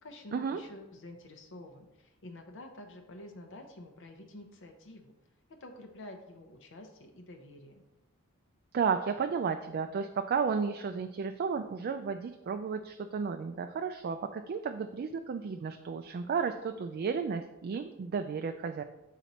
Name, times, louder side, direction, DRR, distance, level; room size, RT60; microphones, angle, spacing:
voice 1, 0.0-5.1 5.6-7.8, left 1 dB, 60° left, 4 dB, 0.7 m, -49 dB
voice 2, 8.7-18.8, right 6 dB, 45° right, 7 dB, 0.3 m, -33 dB
7.4 x 4.0 x 4.2 m, 0.98 s
head